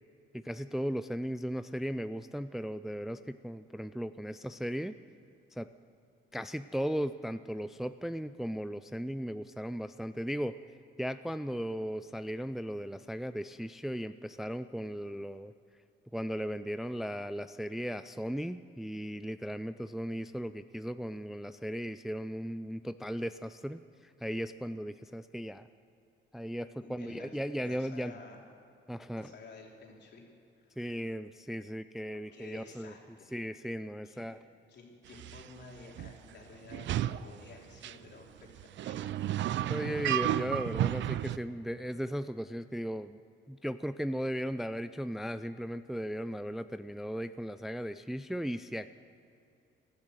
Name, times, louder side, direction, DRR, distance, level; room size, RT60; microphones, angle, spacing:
voice 1, 0.3-5.0 5.5-5.7 6.3-10.6 11.0-15.5 16.1-25.7 26.3-28.1 28.9-29.3 30.8-32.9 33.3-34.4 39.7-43.2 43.5-48.9, equal, ahead, 12 dB, 0.4 m, -36 dB
voice 2, 26.8-27.3 27.6-28.4 29.1-30.2 30.5-31.0 32.3-33.4 34.0-34.3 34.7-39.0, left 4 dB, 60° left, -1 dB, 3.4 m, -52 dB
sound 1, 35.2-35.4 36.0-36.1 36.7-37.2 37.8-37.9 38.6-41.4, right 13 dB, 70° right, 0.5 m, -32 dB
17.5 x 11.5 x 6.5 m, 2.6 s
cardioid pair, 90°, 20 cm